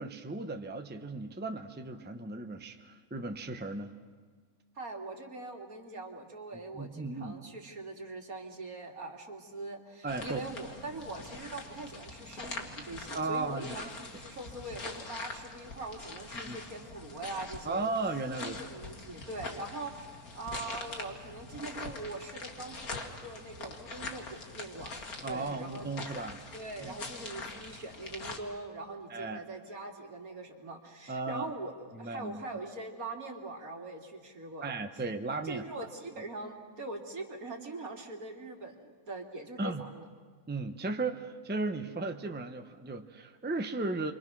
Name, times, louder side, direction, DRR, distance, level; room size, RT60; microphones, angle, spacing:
voice 1, 0.0-3.9 6.7-7.3 10.0-10.4 13.1-13.9 16.4-16.6 17.6-18.6 25.2-26.4 26.8-26.9 29.1-29.4 31.1-31.5 31.9-32.4 34.6-35.6 39.6-39.8 40.5-44.1, right 3 dB, 10° right, 6 dB, 0.8 m, -35 dB
voice 2, 4.8-17.9 18.4-26.1 26.5-34.8 35.3-40.1, right 2 dB, 70° right, 2 dB, 2.9 m, -42 dB
sound 1, 10.1-28.4, left 3 dB, 80° left, 2.5 m, -44 dB
29.0 x 24.0 x 6.2 m, 1.6 s
omnidirectional pair, 1.5 m